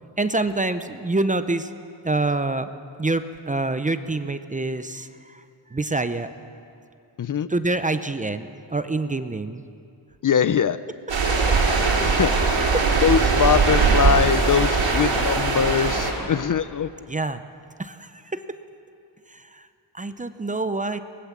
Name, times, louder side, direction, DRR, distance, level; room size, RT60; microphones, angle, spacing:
voice 1, 0.2-1.7 2.0-2.7 3.0-5.4 5.7-6.3 7.5-9.6 11.5-11.6 11.8-12.1 12.6-12.8 16.2-16.3 17.1-17.4 17.8-18.4 19.3-19.6 19.9-21.0, right 2 dB, 20° right, 10 dB, 0.6 m, -26 dB
voice 2, 7.2-7.5 10.2-10.8 11.8-12.7 13.0-16.9, left 8 dB, 45° left, 14 dB, 0.5 m, -22 dB
sound 1, 11.1-16.1, right 4 dB, 85° right, 4.4 m, -20 dB
23.5 x 20.0 x 7.3 m, 2.5 s
wide cardioid pair, 175°, 44 cm